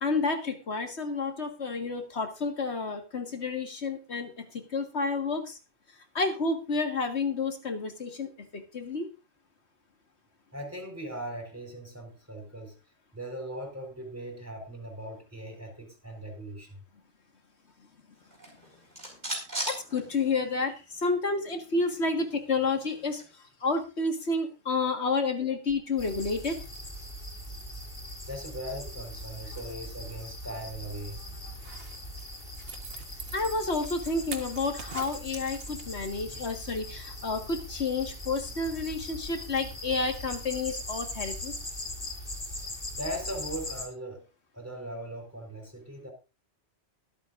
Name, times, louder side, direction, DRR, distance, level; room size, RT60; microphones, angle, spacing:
voice 1, 0.0-5.6 6.1-9.1 19.7-23.2 23.6-26.6 33.3-41.5, left 3 dB, 70° left, 4 dB, 2.0 m, -30 dB
voice 2, 10.5-12.7 13.1-16.8 28.3-31.2 42.9-44.3 44.5-46.1, right 1 dB, 15° right, 2 dB, 4.5 m, -39 dB
sound 1, 18.3-20.7 21.0-21.1 21.4-23.3, right 1 dB, 40° right, 4.8 m, -39 dB
sound 2, 26.0-43.9, left 1 dB, 50° left, 3.8 m, -40 dB
Zipper (clothing), 31.5-36.1 36.4-36.5, right 4 dB, 55° right, 1.6 m, -44 dB
24.0 x 8.3 x 2.6 m, 0.30 s
omnidirectional pair, 1.2 m